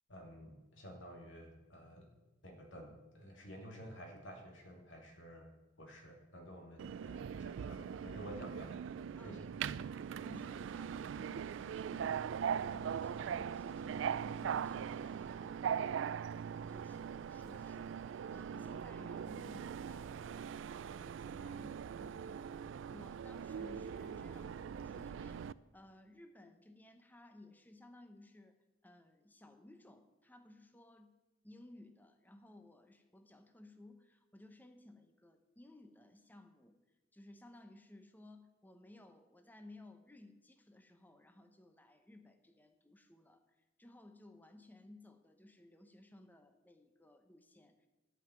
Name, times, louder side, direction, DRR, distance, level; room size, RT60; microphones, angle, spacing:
voice 1, 0.1-2.1 2.4-5.5 5.8-8.8 9.2-9.5, equal, 80° left, 2 dB, 2.6 m, -52 dB
Subway metro underground, 6.8-25.5, right 7 dB, 80° right, 0.3 m, -41 dB
voice 2, 9.2-25.4 25.7-31.2 31.4-36.8 37.1-47.9, left 2 dB, 10° left, 7 dB, 0.9 m, -59 dB
12.0 x 5.8 x 9.2 m, 1.1 s
head